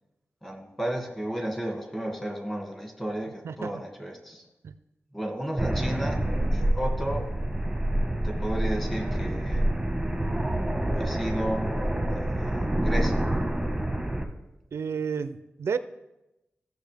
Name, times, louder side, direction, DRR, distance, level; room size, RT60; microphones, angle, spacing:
voice 1, 0.4-4.4 5.1-6.2 6.5-7.2 8.2-9.7 11.0-11.7 12.1-13.2, right 1 dB, 10° left, 1 dB, 2.0 m, -33 dB
sound 1, 5.6-14.2, right 1 dB, 5° right, 1.0 m, -27 dB
voice 2, 14.7-15.8, right 6 dB, 75° right, 13 dB, 0.4 m, -31 dB
16.0 x 6.5 x 3.4 m, 0.96 s
wide cardioid pair, 130°, 4 cm